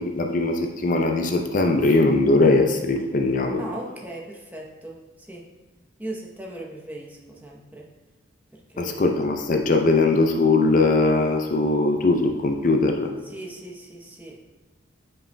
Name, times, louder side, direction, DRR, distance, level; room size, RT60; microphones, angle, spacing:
voice 1, 0.0-3.6 8.8-13.1, left 2 dB, 45° left, 4 dB, 0.5 m, -20 dB
voice 2, 3.6-5.4 6.0-7.9 8.5-9.2 13.2-14.5, right 1 dB, 10° right, -2 dB, 0.8 m, -38 dB
9.5 x 5.4 x 2.2 m, 1.3 s
head